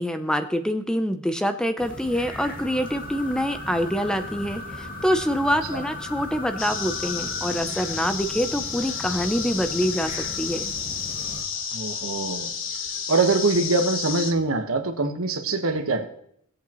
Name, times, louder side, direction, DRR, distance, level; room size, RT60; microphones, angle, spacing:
voice 1, 0.0-10.1 10.4-10.7, equal, 5° left, 0.6 m, -25 dB
sound 1, 1.8-11.4, left 2 dB, 40° left, 2.4 m, -37 dB
sound 2, 6.6-14.3, left 6 dB, 65° left, 1.1 m, -31 dB
voice 2, 11.7-12.5 13.1-16.1, right 3 dB, 80° right, 1.3 m, -23 dB
18.0 x 8.3 x 3.0 m
head